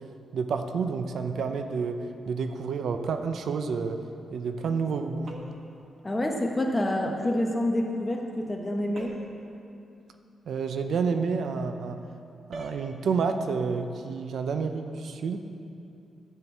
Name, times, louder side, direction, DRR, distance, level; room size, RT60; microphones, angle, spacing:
voice 1, 0.3-4.0 4.3-5.3 10.5-12.0 12.5-15.4, right 5 dB, 70° right, 7 dB, 0.6 m, -29 dB
sound 1, 5.3-5.7 9.0-9.4 12.5-12.9, right 2 dB, 55° right, 1.2 m, -42 dB
voice 2, 6.0-9.2, left 1 dB, 20° left, 1 dB, 1.2 m, -27 dB
12.0 x 4.6 x 8.0 m, 2.6 s
cardioid pair, 105°, 0 cm